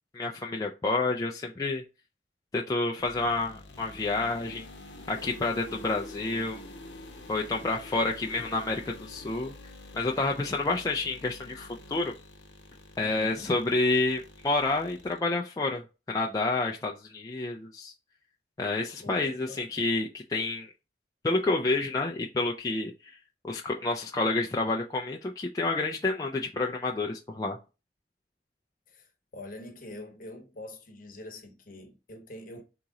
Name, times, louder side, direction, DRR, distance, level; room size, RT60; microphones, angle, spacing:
voice 1, 0.1-1.8 2.5-4.7 5.1-6.6 7.3-9.5 9.9-12.1 13.0-17.9 18.6-20.7 21.2-23.2 23.4-27.6, left 2 dB, 20° left, 0.3 m, -29 dB
sound 1, 3.0-15.2, left 1 dB, 90° left, 0.9 m, -47 dB
voice 2, 13.0-13.5 19.0-19.7 28.9-32.6, left 1 dB, 50° left, 0.9 m, -45 dB
3.7 x 2.9 x 4.0 m
head